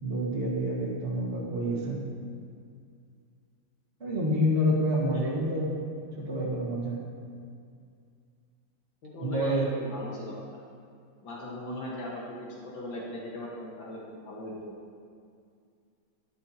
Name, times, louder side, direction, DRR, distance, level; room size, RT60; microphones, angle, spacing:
voice 1, 0.0-2.0 4.0-5.7 6.2-7.0 9.2-9.7, equal, 35° right, -5 dB, 2.0 m, -28 dB
voice 2, 9.0-10.4 11.2-14.7, left 1 dB, 70° left, -5 dB, 2.3 m, -38 dB
12.5 x 11.0 x 2.9 m, 2.3 s
omnidirectional pair, 2.2 m